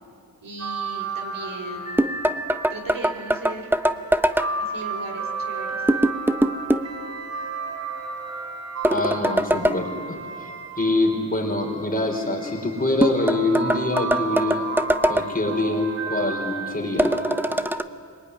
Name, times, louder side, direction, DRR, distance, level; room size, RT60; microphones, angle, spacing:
voice 1, 0.4-2.1 2.7-3.7 4.6-6.0, right 2 dB, 65° right, 5 dB, 3.8 m, -37 dB
sound 1, 0.6-11.5 12.4-17.6, right 3 dB, 45° right, 4.8 m, -33 dB
sound 2, 2.0-4.5 5.9-6.9 8.8-9.8 13.0-15.3 17.0-17.8, right 1 dB, 5° right, 0.8 m, -22 dB
voice 2, 8.9-10.5 10.8-14.7 15.1-17.1, left 2 dB, 25° left, 1 dB, 5.0 m, -25 dB
25.5 x 23.0 x 9.9 m, 2.3 s
wide cardioid pair, 115°, 35 cm